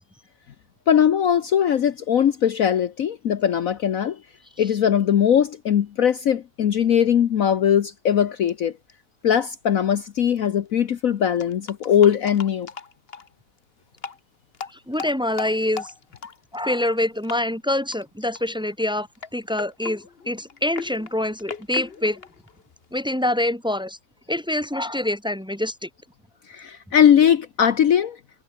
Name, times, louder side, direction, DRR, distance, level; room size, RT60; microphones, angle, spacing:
voice 1, 0.9-4.2 4.6-8.7 9.2-12.7 26.5-28.2, left 9 dB, 60° left, 1.2 m, -20 dB
sound 1, 8.4-8.5 8.9-9.0 10.0-10.1 10.3-10.4 11.4-13.3 13.9-14.2 14.5-17.0 17.2-17.4 17.7-18.0 18.3-18.7 19.1-23.0, left 5 dB, 40° left, 1.5 m, -38 dB
voice 2, 14.7-15.9 16.5-19.1 19.3-22.2 22.9-24.0 24.3-25.9, left 1 dB, 5° right, 2.0 m, -25 dB
omnidirectional pair, 1.8 m